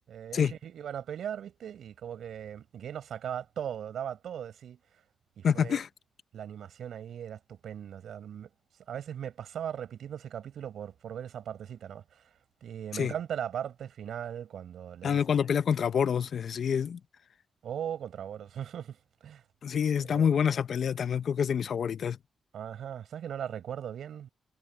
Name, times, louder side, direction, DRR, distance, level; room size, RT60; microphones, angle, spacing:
voice 1, 0.1-4.8 5.4-5.8 6.3-8.5 8.9-12.3 12.6-15.2 17.6-19.4 20.0-20.4 22.5-24.3, right 9 dB, 80° right, 6.0 m, -39 dB
voice 2, 5.4-5.9 13.0-13.1 15.0-17.0 19.6-22.2, left 7 dB, 70° left, 0.8 m, -27 dB
supercardioid pair, 55°, 0 cm